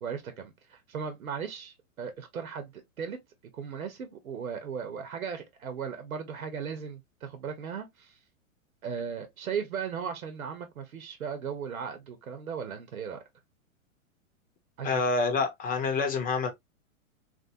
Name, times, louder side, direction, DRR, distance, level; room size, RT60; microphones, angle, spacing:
voice 1, 0.0-3.2 3.5-8.2 8.8-13.2 14.8-15.1, right 7 dB, 90° right, 1.1 m, -37 dB
voice 2, 14.8-16.5, left 4 dB, 20° left, 0.8 m, -27 dB
3.1 x 2.6 x 2.7 m
hypercardioid pair, 130°, 41 cm